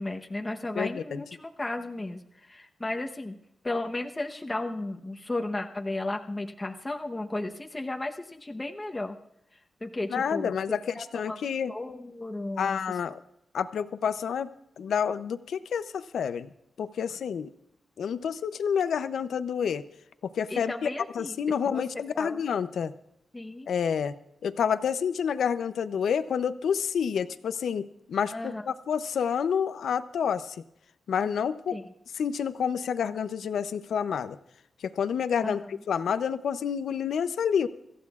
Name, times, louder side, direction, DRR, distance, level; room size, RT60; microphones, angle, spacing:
voice 1, 0.0-3.3 3.6-9.2 9.8-11.4 11.7-12.8 20.5-21.3 21.7-21.8 22.1-22.4 23.3-23.7 28.3-28.6 31.7-31.8 35.4-35.6, left 2 dB, 15° left, 3 dB, 0.9 m, -34 dB
voice 2, 0.7-1.2 10.1-11.7 12.6-13.2 13.5-16.5 16.8-17.5 18.0-19.8 20.2-20.9 21.1-22.9 23.7-24.1 24.4-30.6 31.1-31.8 32.1-34.4 34.8-37.7, left 7 dB, 85° left, 12 dB, 0.5 m, -29 dB
25.5 x 14.5 x 2.4 m, 0.79 s
wide cardioid pair, 140°, 0 cm